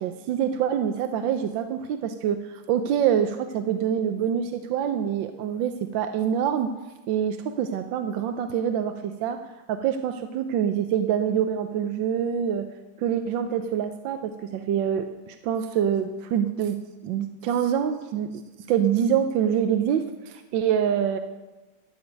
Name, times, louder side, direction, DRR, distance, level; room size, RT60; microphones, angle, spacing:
voice 1, 0.0-6.7 7.1-9.4 9.7-12.7 13.0-18.4 18.7-21.2, right 9 dB, 85° right, 7 dB, 1.4 m, -25 dB
12.0 x 7.0 x 9.2 m, 1.1 s
omnidirectional pair, 2.0 m